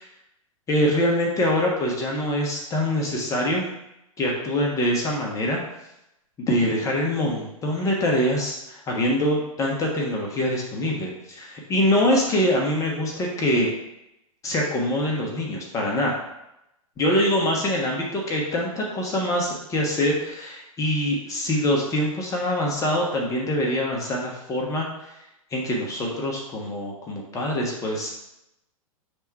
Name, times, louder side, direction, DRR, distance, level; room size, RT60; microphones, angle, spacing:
voice 1, 0.7-3.7 4.2-5.6 6.4-13.7 14.4-16.2 17.0-25.2 25.5-28.2, left 1 dB, 15° left, -1 dB, 1.1 m, -24 dB
5.8 x 3.6 x 4.6 m, 0.85 s
figure-of-eight pair, 105°, 18 cm